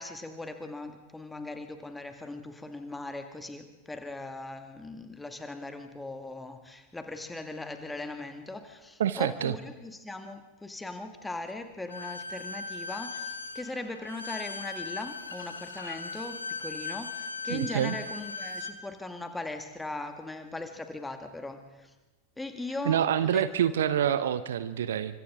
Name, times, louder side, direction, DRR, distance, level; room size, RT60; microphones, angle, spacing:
voice 1, 0.0-21.9 22.4-23.4, left 2 dB, 10° left, 6 dB, 2.0 m, -39 dB
voice 2, 9.0-9.5 17.5-18.0 22.8-25.2, right 10 dB, 60° right, 14 dB, 0.8 m, -27 dB
Bowed string instrument, 11.9-18.8, left 4 dB, 80° left, 1.6 m, -38 dB
29.5 x 25.0 x 3.7 m, 1.1 s
figure-of-eight pair, 90°, 0 cm